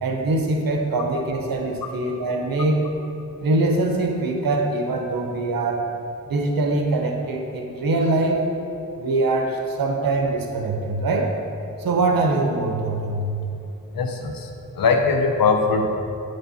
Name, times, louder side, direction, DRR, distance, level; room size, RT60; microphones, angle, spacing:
voice 1, 0.0-2.8 3.4-5.9 6.3-8.4 9.0-11.3 11.8-13.5, right 2 dB, 90° right, 2 dB, 1.0 m, -23 dB
voice 2, 13.9-14.5 14.8-15.9, left 4 dB, 85° left, 4 dB, 0.8 m, -20 dB
8.0 x 6.6 x 4.2 m, 2.8 s
cardioid pair, 45°, 34 cm